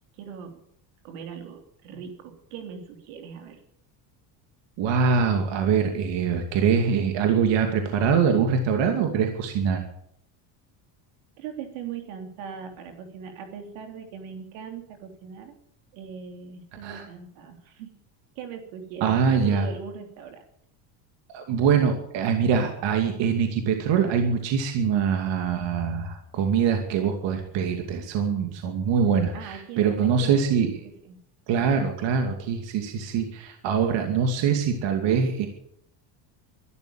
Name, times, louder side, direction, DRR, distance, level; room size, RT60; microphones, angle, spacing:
voice 1, 0.2-0.6 1.0-3.6 11.4-15.6 15.9-17.9 18.3-20.4 29.3-31.2, right 7 dB, 80° right, 5 dB, 3.4 m, -40 dB
voice 2, 4.8-9.9 16.8-17.1 19.0-19.7 21.3-30.7 31.5-35.5, right 6 dB, 65° right, 5 dB, 2.5 m, -23 dB
12.5 x 12.0 x 8.9 m, 0.71 s
supercardioid pair, 100°, 48 cm